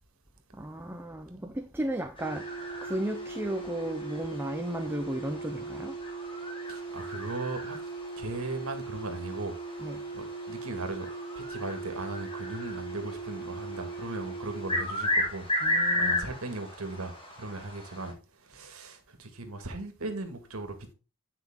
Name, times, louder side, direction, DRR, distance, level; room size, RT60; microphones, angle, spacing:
voice 1, 0.5-2.5 2.8-5.9 9.8-10.0 15.6-16.4, right 1 dB, 10° right, 0.6 m, -34 dB
sound 1, 2.2-14.9, right 4 dB, 50° left, 0.6 m, -40 dB
sound 2, 2.2-18.1, left 1 dB, 25° left, 3.6 m, -36 dB
voice 2, 6.7-7.8 8.2-9.6 10.1-11.1 11.4-15.5 16.0-20.9, right 2 dB, 80° right, 2.0 m, -38 dB
10.5 x 5.7 x 3.7 m
head